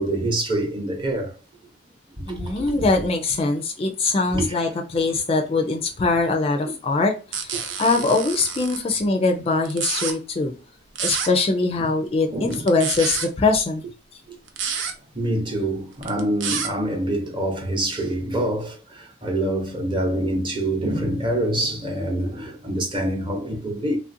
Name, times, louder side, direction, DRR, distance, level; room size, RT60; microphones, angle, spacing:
voice 1, 0.0-1.3 2.2-2.6 4.3-4.5 7.5-7.7 11.8-11.9 12.3-12.7 14.3-14.4 15.1-24.0, right 1 dB, 25° right, 0.8 m, -26 dB
voice 2, 2.3-10.5 11.0-13.8, left 3 dB, 30° left, 0.3 m, -22 dB
sound 1, 7.3-8.8 9.6-10.1 10.9-11.3 12.5-13.3 14.5-14.9 16.0-16.7, right 6 dB, 80° right, 0.6 m, -28 dB
3.2 x 2.4 x 2.6 m
head